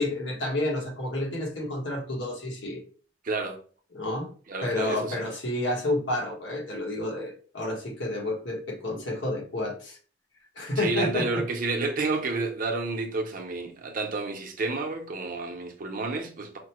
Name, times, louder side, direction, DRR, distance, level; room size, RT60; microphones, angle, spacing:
voice 1, 0.0-2.8 3.9-4.3 4.6-10.0 10.6-11.4, left 2 dB, 80° left, 1.3 m, -30 dB
voice 2, 3.2-3.6 4.5-5.3 10.8-16.6, right 3 dB, 50° right, 0.8 m, -30 dB
5.1 x 2.1 x 3.0 m
head